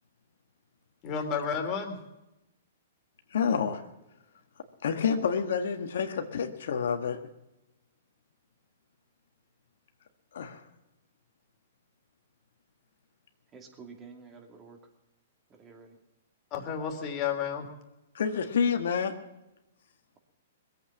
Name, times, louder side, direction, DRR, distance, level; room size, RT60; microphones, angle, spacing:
voice 1, 1.0-2.0 16.5-17.7, left 6 dB, 30° left, 3 dB, 3.0 m, -31 dB
voice 2, 3.3-3.8 4.8-7.2 10.3-10.6 18.1-19.1, left 6 dB, 70° left, 6 dB, 1.6 m, -28 dB
voice 3, 13.5-14.8 15.5-16.0, right 5 dB, 20° right, 3 dB, 2.6 m, -49 dB
20.5 x 8.4 x 7.3 m, 0.95 s
hypercardioid pair, 135°, 0 cm